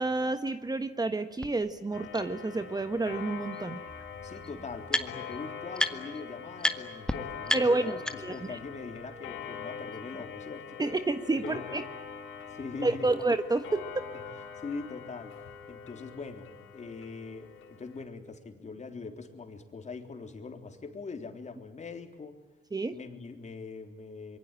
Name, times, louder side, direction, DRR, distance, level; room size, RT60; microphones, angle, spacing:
voice 1, 0.0-3.8 7.5-8.3 10.8-11.8 12.8-14.0 22.7-23.0, right 2 dB, 20° right, 9 dB, 1.3 m, -29 dB
sound 1, 1.4-1.5 2.1-2.2 3.5-3.6 3.9-5.4 5.7-6.2 6.6-6.8 7.1-7.2 7.5-8.5, left 1 dB, 5° left, 1.7 m, -31 dB
Clock, 1.9-18.0, left 7 dB, 85° left, 4.3 m, -43 dB
voice 2, 4.2-10.7 11.3-11.8 12.5-13.1 14.1-14.2 14.6-15.3 15.7-22.4 22.9-24.4, left 4 dB, 35° left, 5 dB, 3.6 m, -42 dB
25.5 x 23.0 x 9.1 m, 1.1 s
cardioid pair, 90°, 20 cm